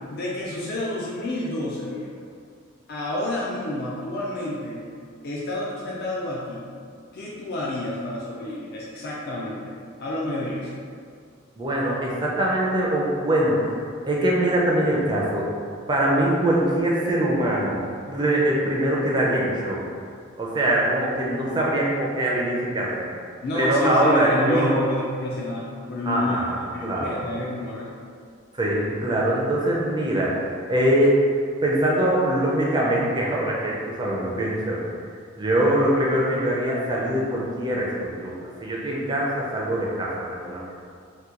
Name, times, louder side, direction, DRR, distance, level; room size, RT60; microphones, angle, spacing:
voice 1, 0.1-2.2 2.9-4.8 5.2-6.6 7.1-10.8 23.4-26.4 26.7-27.9, left 1 dB, 50° left, -5 dB, 0.4 m, -29 dB
voice 2, 11.6-13.8 14.1-15.5 15.9-19.8 20.4-23.1 23.5-24.9 26.1-27.2 28.5-31.2 31.6-34.8 35.4-40.6, right 1 dB, 20° right, -4 dB, 0.4 m, -23 dB
2.8 x 2.2 x 3.6 m, 2.2 s
head